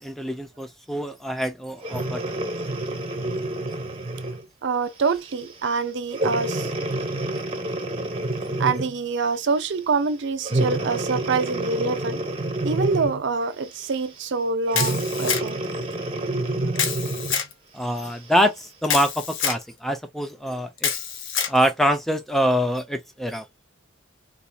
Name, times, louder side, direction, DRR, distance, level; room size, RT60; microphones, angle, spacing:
voice 1, 0.0-2.4 17.7-20.9 21.5-23.5, equal, ahead, 0.4 m, -25 dB
Breathing, 1.8-4.5 5.1-5.3 6.1-9.0 10.4-13.3 14.7-17.4 18.1-18.2, right 2 dB, 25° right, 0.8 m, -28 dB
voice 2, 4.6-6.7 8.6-12.2 12.6-15.6, right 4 dB, 60° right, 0.5 m, -25 dB
Camera, 14.7-15.7 16.8-17.5 18.8-19.6 20.8-21.6, left 7 dB, 65° left, 0.8 m, -26 dB
3.9 x 2.8 x 2.2 m
head